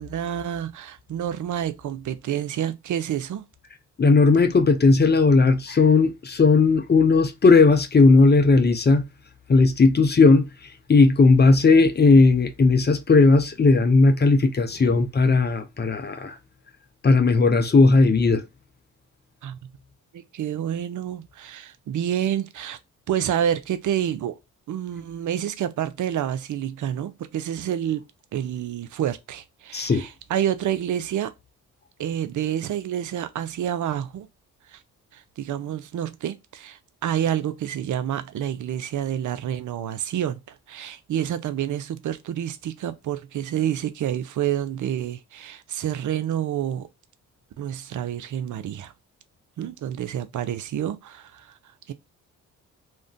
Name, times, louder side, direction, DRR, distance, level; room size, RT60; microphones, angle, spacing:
voice 1, 0.0-3.5 19.4-19.6 20.1-22.8 23.1-24.4 24.7-28.0 28.3-31.3 32.0-34.3 34.7-34.8 35.1-46.9 47.6-48.9 49.6-51.6 51.9-52.0, right 10 dB, 50° right, 0.6 m, -28 dB
voice 2, 4.0-9.0 9.5-10.5 10.9-16.4 17.0-18.4 29.7-30.0, left 3 dB, 25° left, 0.6 m, -17 dB
2.5 x 2.1 x 3.7 m
hypercardioid pair, 45°, 38 cm